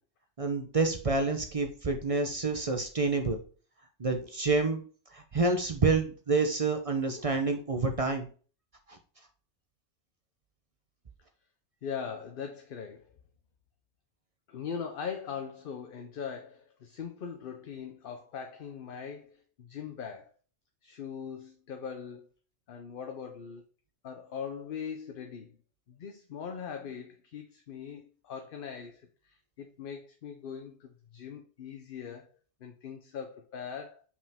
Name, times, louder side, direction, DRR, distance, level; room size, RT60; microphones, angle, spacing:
voice 1, 0.4-3.4 4.0-4.8 5.1-8.3 8.9-9.0, right 3 dB, 35° right, 0.7 m, -28 dB
voice 2, 11.8-13.1 14.5-20.3 20.8-22.3 22.7-23.7 24.0-25.6 25.9-32.3 32.6-34.0, left 7 dB, 55° left, 0.8 m, -41 dB
5.6 x 4.9 x 3.5 m
omnidirectional pair, 1.2 m